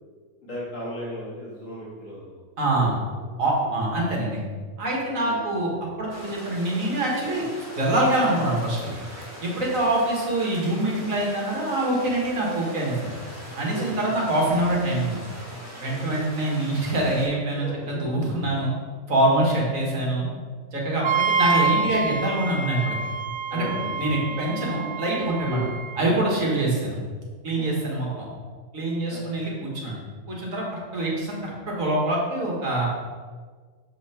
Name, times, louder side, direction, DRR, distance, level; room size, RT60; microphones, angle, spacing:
voice 1, 0.4-3.2 3.6-3.8 5.2-5.3 13.7-13.9 15.8-16.2 17.6-17.7 19.3-19.5 23.5-23.8 25.5-25.7 27.5-27.8 29.1-29.3, equal, 75° left, -7 dB, 2.4 m, -36 dB
voice 2, 2.6-2.9 3.4-4.4 4.8-7.4 7.8-8.9 9.4-13.1 13.6-15.2 15.8-18.7 19.1-20.3 20.7-23.0 23.5-25.6 26.0-27.0 27.4-28.3 28.7-30.0 30.3-30.6 30.9-32.9, right 1 dB, 80° right, -3 dB, 2.2 m, -25 dB
sound 1, 6.1-17.3, equal, 10° right, 1.7 m, -41 dB
Wind instrument woodwind instrument, 21.0-26.0, right 5 dB, 65° right, 0.5 m, -27 dB
7.1 x 5.7 x 4.4 m, 1.5 s
omnidirectional pair, 1.4 m